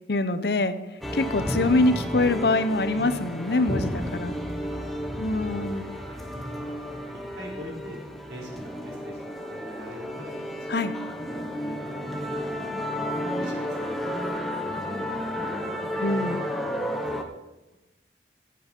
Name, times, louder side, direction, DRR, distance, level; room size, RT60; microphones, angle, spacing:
voice 1, 0.1-0.8 1.1-4.3 5.2-5.9 10.7-10.9 16.0-16.4, left 2 dB, 65° left, 11 dB, 0.8 m, -24 dB
sound 1, 1.0-17.2, equal, ahead, 1.1 m, -32 dB
voice 2, 3.7-4.8 5.2-5.6 6.1-8.0 8.3-10.5 10.8-11.0 11.3-12.7 13.0-15.2 16.0-16.7 17.1-17.4, equal, 75° right, -2 dB, 3.9 m, -44 dB
16.0 x 8.5 x 4.4 m, 1.0 s
head